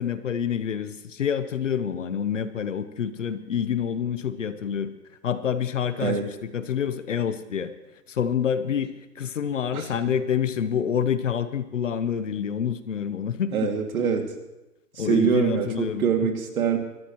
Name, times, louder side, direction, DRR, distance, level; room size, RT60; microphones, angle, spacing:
voice 1, 0.0-4.9 5.2-7.7 8.1-13.7 15.0-16.3, left 8 dB, 50° left, 12 dB, 0.8 m, -27 dB
voice 2, 13.5-14.3 15.0-16.8, right 6 dB, 55° right, 4 dB, 2.4 m, -24 dB
25.0 x 13.5 x 3.1 m, 0.98 s
hypercardioid pair, 175°, 50 cm